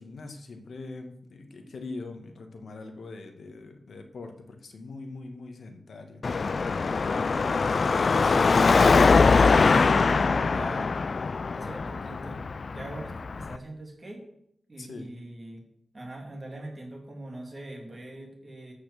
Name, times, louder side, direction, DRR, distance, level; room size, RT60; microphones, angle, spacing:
voice 1, 0.0-6.2 7.6-8.4 14.8-15.1, left 3 dB, 75° left, 5 dB, 1.6 m, -42 dB
Car passing by / Traffic noise roadway noise / Engine, 6.2-13.6, left 4 dB, 55° left, 0.5 m, -22 dB
voice 2, 8.0-8.9 9.2-10.9 11.5-12.4 12.7-14.2 14.7-15.6 15.9-18.7, right 1 dB, 30° right, 1 dB, 3.1 m, -42 dB
13.5 x 5.8 x 7.0 m, 0.74 s
wide cardioid pair, 120°, 0 cm